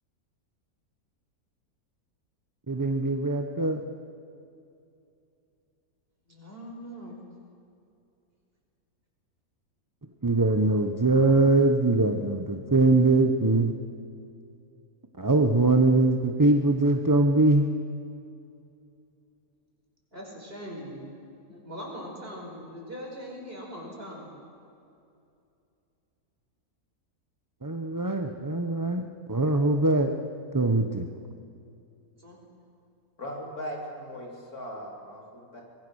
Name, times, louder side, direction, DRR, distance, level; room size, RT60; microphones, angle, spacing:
voice 1, 2.7-3.8 10.2-13.7 15.2-17.7 27.6-30.1 30.5-31.1, right 2 dB, 15° right, 5 dB, 0.7 m, -22 dB
voice 2, 6.3-7.2 20.1-21.0 21.5-24.3 32.2-32.4, equal, 35° right, -1 dB, 5.3 m, -41 dB
voice 3, 33.2-35.6, equal, 75° left, -1 dB, 4.3 m, -38 dB
25.0 x 21.5 x 6.4 m, 2.6 s
omnidirectional pair, 1.6 m